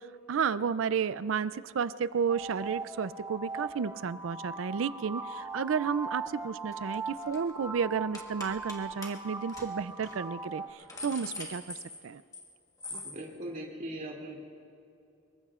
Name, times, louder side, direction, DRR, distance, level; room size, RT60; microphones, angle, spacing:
voice 1, 0.0-11.7 12.0-12.2, right 6 dB, 75° right, 16 dB, 0.4 m, -32 dB
sound 1, 2.3-10.7, right 3 dB, 15° right, 0.7 m, -40 dB
sound 2, 6.7-7.0 7.2-7.5 8.1-8.8 9.0-9.1 9.5-9.7 10.0-10.2 10.6-12.5 12.8-13.2, left 3 dB, 15° left, 1.6 m, -42 dB
voice 2, 12.9-14.5, right 1 dB, 40° right, -2 dB, 2.7 m, -40 dB
25.5 x 22.5 x 2.5 m, 2.7 s
head